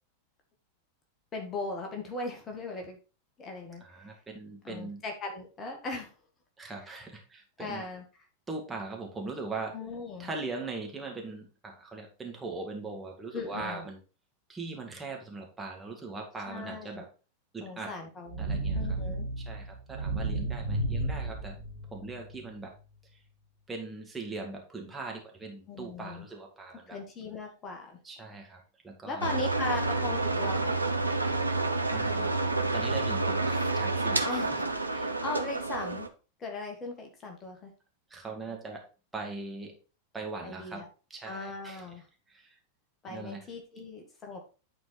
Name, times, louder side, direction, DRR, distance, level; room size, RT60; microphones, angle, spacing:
voice 1, 1.3-3.0 3.4-4.1 4.6-6.1 6.6-6.7 7.6-8.0 9.7-10.3 13.3-13.9 16.5-17.0 17.6-19.3 25.7-26.2 26.9-28.0 29.1-30.8 34.2-34.5 35.2-36.1 36.4-37.7 40.4-40.9 41.2-42.0 43.0-44.4, left 3 dB, 25° left, 2 dB, 1.9 m, -38 dB
voice 2, 3.8-5.0 6.6-7.8 8.5-9.7 10.2-14.0 14.5-17.1 17.5-17.9 18.4-19.0 19.4-21.6 21.9-22.7 23.1-23.2 23.7-27.0 28.0-29.3 31.9-34.6 34.9-35.2 38.1-38.8 39.1-39.8 40.1-41.9 42.3-42.6 43.1-43.4, right 3 dB, 10° right, 0 dB, 2.0 m, -40 dB
sound 1, 18.3-22.3, right 2 dB, 65° right, 2.1 m, -33 dB
sound 2, 29.2-36.1, right 3 dB, 85° right, 0.8 m, -29 dB
9.7 x 4.5 x 4.2 m, 0.34 s
figure-of-eight pair, 90°, 0 cm